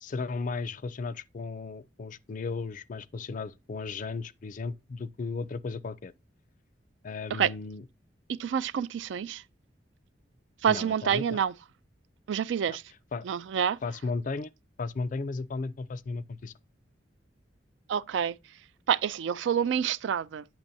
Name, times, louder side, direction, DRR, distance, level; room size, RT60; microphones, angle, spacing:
voice 1, 0.0-6.1 7.0-7.8 10.7-11.4 12.7-12.8 13.1-13.2 13.8-14.5 14.8-16.5, left 4 dB, 45° left, 0.4 m, -35 dB
voice 2, 8.3-9.4 10.6-11.6 12.3-12.8 13.2-14.0 17.9-18.3 18.9-20.4, right 8 dB, 80° right, 0.3 m, -28 dB
8.6 x 6.0 x 2.7 m
head